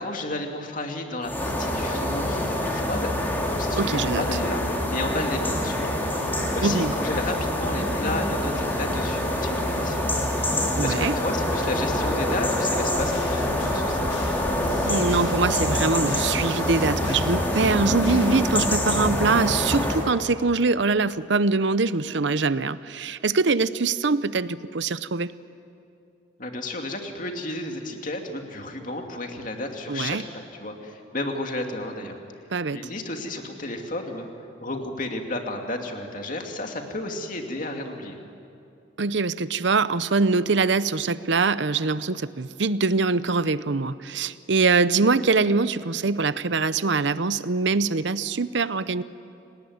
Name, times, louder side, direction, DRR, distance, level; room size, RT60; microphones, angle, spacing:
voice 1, 0.0-4.6 4.9-5.9 6.2-10.2 10.8-14.1 26.4-32.2 32.7-34.3 34.6-38.2, left 2 dB, 45° left, 3 dB, 2.5 m, -32 dB
sound 1, 1.2-20.1, left 1 dB, 10° left, 3.3 m, -25 dB
voice 2, 3.8-4.2 6.6-6.9 10.8-11.1 14.8-25.3 29.9-30.2 32.5-32.9 39.0-49.0, right 4 dB, 65° right, 15 dB, 0.7 m, -23 dB
sound 2, 12.9-18.4, left 1 dB, 75° left, 6.6 m, -39 dB
29.5 x 19.0 x 9.5 m, 2.6 s
head